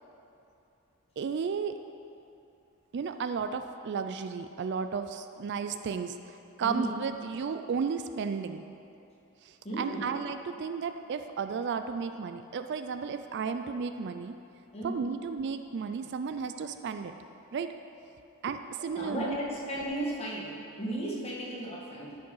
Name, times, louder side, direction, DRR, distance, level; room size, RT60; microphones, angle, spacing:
voice 1, 1.2-1.8 2.9-8.6 9.4-14.4 14.8-17.1 17.5-17.7 18.4-19.4, right 5 dB, 50° right, 8 dB, 0.3 m, -33 dB
voice 2, 6.6-6.9 9.6-10.1 14.7-15.1 18.9-22.2, right 1 dB, 25° left, -4 dB, 1.7 m, -35 dB
13.0 x 5.2 x 5.5 m, 2.8 s
head